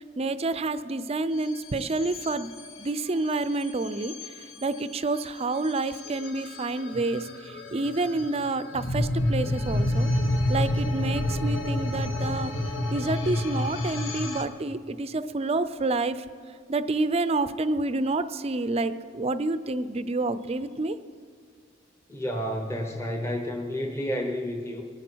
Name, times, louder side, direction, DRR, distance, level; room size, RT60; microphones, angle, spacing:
voice 1, 0.2-2.5 2.8-4.1 4.6-10.1 10.5-12.5 12.9-16.2 16.7-21.0, right 2 dB, 30° right, 12 dB, 0.5 m, -28 dB
sound 1, 1.3-14.4, left 1 dB, 85° left, 1.2 m, -30 dB
voice 2, 22.1-24.8, equal, 15° left, 3 dB, 0.9 m, -30 dB
22.5 x 10.5 x 4.6 m, 2.1 s
head